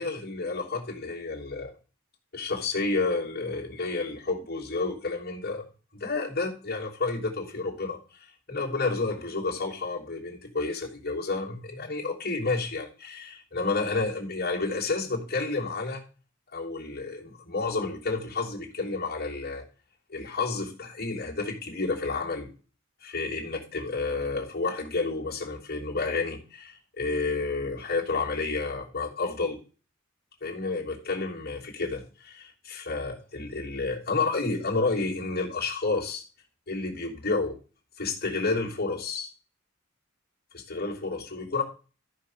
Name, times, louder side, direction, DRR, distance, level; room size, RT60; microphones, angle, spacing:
voice 1, 0.0-1.7 2.3-5.6 5.9-16.0 16.5-19.6 20.1-22.5 23.0-29.6 30.4-36.2 36.7-37.6 38.0-39.3 40.5-41.6, left 3 dB, 50° left, -2 dB, 3.1 m, -30 dB
13.5 x 5.0 x 6.4 m, 0.37 s
head